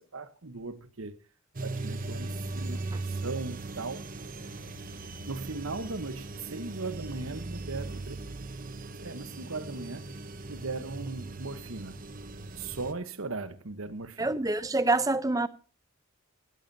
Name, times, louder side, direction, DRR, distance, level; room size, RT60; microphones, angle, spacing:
voice 1, 0.1-1.2 1.6-4.1 5.3-8.2 9.0-10.2 10.5-12.0 12.6-14.4, right 3 dB, 70° right, 1.1 m, -38 dB
sound 1, 1.5-12.9, right 2 dB, 40° right, 0.9 m, -39 dB
voice 2, 14.2-15.5, right 2 dB, 15° right, 0.6 m, -26 dB
16.0 x 14.0 x 2.7 m
head